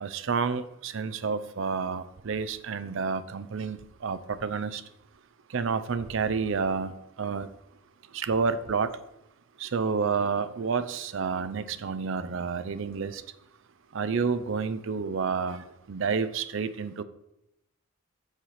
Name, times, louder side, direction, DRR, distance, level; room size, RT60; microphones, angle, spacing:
voice 1, 0.0-4.8 5.5-6.9 7.2-7.5 8.1-8.9 9.6-13.2 13.9-17.0, right 5 dB, 60° right, 13 dB, 0.5 m, -29 dB
6.6 x 4.8 x 5.7 m, 0.86 s
head